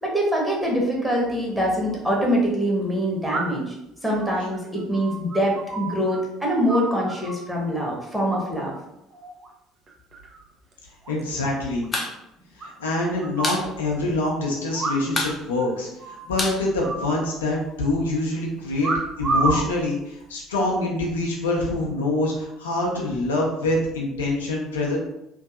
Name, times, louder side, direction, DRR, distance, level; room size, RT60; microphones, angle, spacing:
voice 1, 0.0-3.7 4.0-8.7, equal, 5° right, -3 dB, 1.0 m, -24 dB
sound 1, 1.5-1.6 3.3-3.8 4.2-6.2 6.5-7.5 8.3-8.8 9.1-9.5 9.9-10.4 10.7-10.8 11.0-11.1 11.4-11.5 11.8-11.9 12.6-13.6 14.7-15.3 15.6-15.7 16.0-16.3 16.8-17.7 18.8-19.7 20.4-20.8, right 3 dB, 40° right, 0.6 m, -30 dB
voice 2, 11.1-11.9 12.6-18.9 19.2-25.0, left 2 dB, 75° left, -2 dB, 0.5 m, -25 dB
sound 2, 11.9-12.1 12.4-12.5 12.8-13.7 14.0-14.1 14.4-14.8 15.1-17.5, left 2 dB, 25° left, 0.6 m, -29 dB
3.0 x 2.5 x 2.4 m, 0.85 s
figure-of-eight pair, 55°, 0 cm